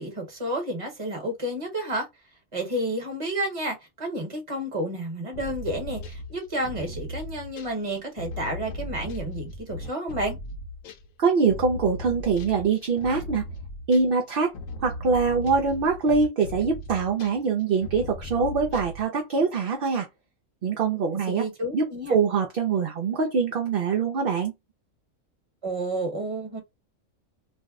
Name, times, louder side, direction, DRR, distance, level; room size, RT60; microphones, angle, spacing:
voice 1, 0.0-2.1 2.5-10.4 21.3-22.2 25.6-26.6, right 1 dB, 25° right, 1.0 m, -31 dB
sound 1, 5.3-11.1 11.5-14.2 14.5-17.5 17.8-19.0, left 1 dB, 80° left, 1.0 m, -37 dB
voice 2, 11.2-13.5 13.9-14.5 14.8-20.1 20.6-21.5 21.7-24.5, right 5 dB, 55° right, 0.7 m, -24 dB
2.6 x 2.1 x 3.5 m
omnidirectional pair, 1.3 m